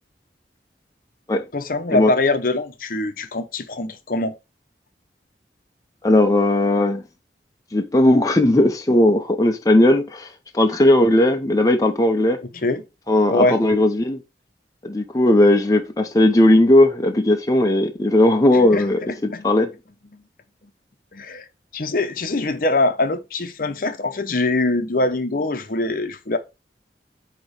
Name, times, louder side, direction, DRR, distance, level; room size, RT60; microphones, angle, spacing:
voice 1, 1.5-4.3 12.5-12.8 13.3-13.6 18.5-19.5 20.1-20.2 21.1-21.5 21.7-26.4, left 2 dB, 50° left, 0.8 m, -23 dB
voice 2, 6.0-7.0 7.7-12.4 13.1-14.2 14.8-19.7, left 1 dB, 20° left, 0.7 m, -17 dB
8.5 x 2.9 x 4.8 m
head